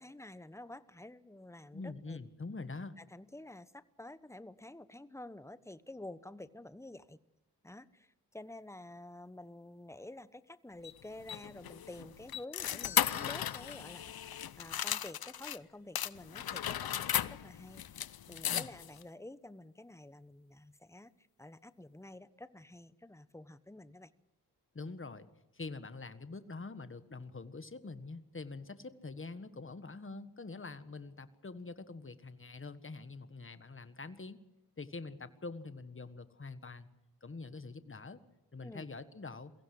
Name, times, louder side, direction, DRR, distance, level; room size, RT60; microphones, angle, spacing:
voice 1, 0.0-2.2 3.0-7.2 7.6-21.1 21.4-24.1 38.6-38.9, left 1 dB, 5° left, 14 dB, 1.1 m, -50 dB
voice 2, 1.7-3.0 18.5-18.7 24.7-25.3 25.5-34.4 34.8-36.9 37.2-38.2 38.5-39.5, left 3 dB, 35° left, 11 dB, 1.6 m, -45 dB
sound 1, 10.8-15.6 16.0-19.0, left 10 dB, 70° left, 0.8 m, -36 dB
22.5 x 16.0 x 7.9 m, 0.95 s
cardioid pair, 50°, 38 cm